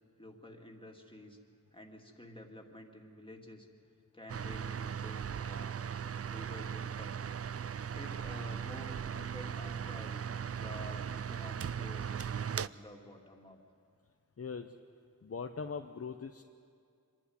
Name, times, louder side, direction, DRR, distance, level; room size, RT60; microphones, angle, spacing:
voice 1, 0.2-1.4 1.7-3.7 4.1-5.8 6.2-7.3 7.9-10.2 10.5-12.2 12.6-13.6, left 1 dB, 15° left, 1 dB, 2.4 m, -50 dB
sound 1, 4.3-12.7, right 7 dB, 45° right, 0.4 m, -38 dB
voice 2, 14.4-14.7 15.2-16.4, left 5 dB, 45° left, 6 dB, 0.7 m, -40 dB
26.0 x 11.5 x 9.6 m, 2.3 s
wide cardioid pair, 75°, 34 cm